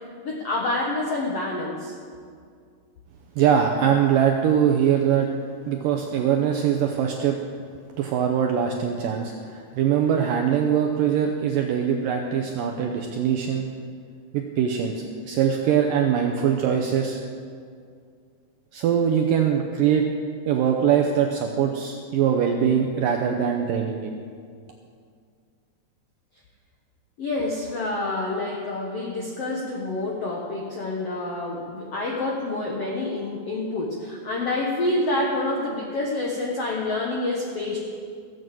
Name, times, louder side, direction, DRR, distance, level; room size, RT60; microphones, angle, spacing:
voice 1, 0.2-1.9 27.2-37.8, left 2 dB, 85° left, -2 dB, 1.3 m, -27 dB
voice 2, 3.4-5.3 5.7-7.4 8.0-13.7 14.3-17.2 18.7-20.1 20.5-24.1, right 8 dB, 80° right, 3 dB, 2.0 m, -22 dB
16.5 x 7.8 x 7.7 m, 2.2 s
omnidirectional pair, 4.8 m